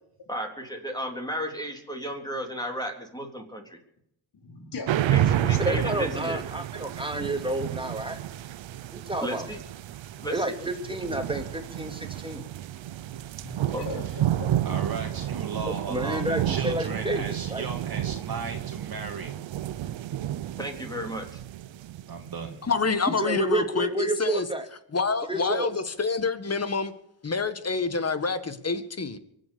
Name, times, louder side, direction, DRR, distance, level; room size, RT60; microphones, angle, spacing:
voice 1, 0.3-3.8 5.1-5.2 5.5-6.4 9.2-9.6 10.2-10.7 13.7-14.0 20.6-21.4, equal, 10° left, 3.6 m, -34 dB
voice 2, 4.4-6.2 13.4-14.5, left 4 dB, 60° left, 4.3 m, -39 dB
sound 1, 4.9-22.7, right 12 dB, 75° right, 0.8 m, -31 dB
voice 3, 5.6-8.2 8.9-9.5 10.3-12.4 15.7-17.7 23.1-24.7 25.3-25.7, right 1 dB, 10° right, 2.6 m, -30 dB
voice 4, 14.6-19.3 22.1-22.6, right 4 dB, 50° right, 2.2 m, -35 dB
voice 5, 22.6-24.5 24.9-26.9 27.2-29.2, left 4 dB, 35° left, 1.7 m, -27 dB
24.0 x 7.9 x 7.1 m
cardioid pair, 80°, 46 cm